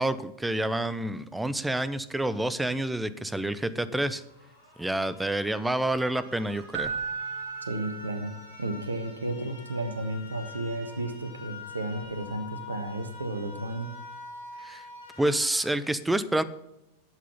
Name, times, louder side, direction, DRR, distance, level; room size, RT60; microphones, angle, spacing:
voice 1, 0.0-4.2 4.8-6.9 14.6-14.8 15.2-16.4, right 1 dB, 5° right, 15 dB, 0.7 m, -28 dB
sound 1, 4.1-15.7, left 3 dB, 85° left, 4.7 m, -46 dB
Keyboard (musical), 6.7-8.7 11.9-12.1, right 5 dB, 60° right, 1.1 m, -35 dB
voice 2, 7.6-8.3 8.6-13.9, right 2 dB, 75° right, 9 dB, 1.4 m, -33 dB
11.5 x 7.6 x 5.5 m, 0.90 s
figure-of-eight pair, 90°, 0 cm